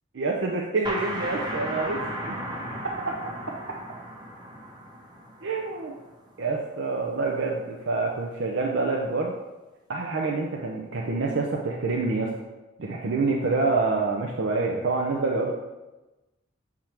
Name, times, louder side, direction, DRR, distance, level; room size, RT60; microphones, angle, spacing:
voice 1, 0.1-2.4 3.0-3.1 5.4-5.9 6.4-9.3 9.9-12.3 12.8-15.5, right 3 dB, 65° right, -1 dB, 0.6 m, -27 dB
sound 1, 0.8-6.3, right 1 dB, 20° right, 0.9 m, -35 dB
7.6 x 3.6 x 4.4 m, 1.1 s
head